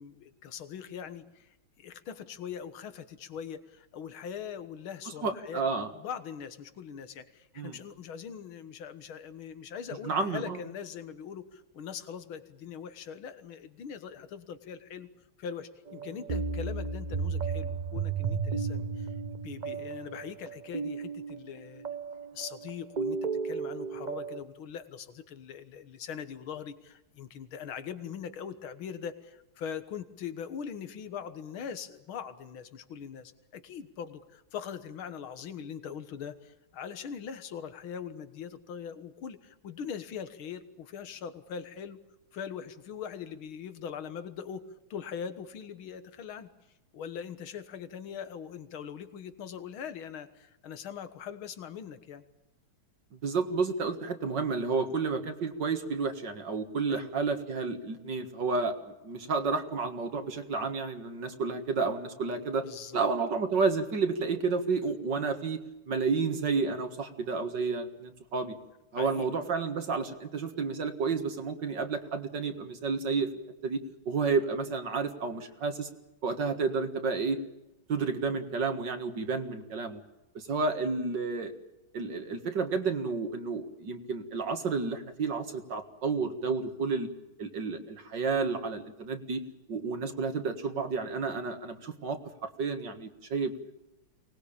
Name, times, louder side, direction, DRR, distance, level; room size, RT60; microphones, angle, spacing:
voice 1, 0.0-5.6 5.9-15.1 15.4-21.8 22.3-42.0 42.3-44.6 44.9-46.5 46.9-52.2 56.9-57.1 62.6-63.1 68.9-69.3 80.7-80.9, left 7 dB, 75° left, 11 dB, 2.2 m, -41 dB
voice 2, 5.1-5.9 7.6-7.8 10.0-10.6 53.2-62.6 62.9-65.6 65.9-68.5 68.9-73.3 73.6-73.8 74.1-75.9 76.2-77.4 77.9-80.0 80.3-81.5 81.9-87.1 87.4-89.4 89.7-93.5, right 4 dB, 60° right, 7 dB, 2.3 m, -31 dB
sound 1, 15.9-24.4, right 5 dB, 40° right, 0.6 m, -34 dB
24.0 x 19.5 x 8.7 m, 0.94 s
omnidirectional pair, 2.3 m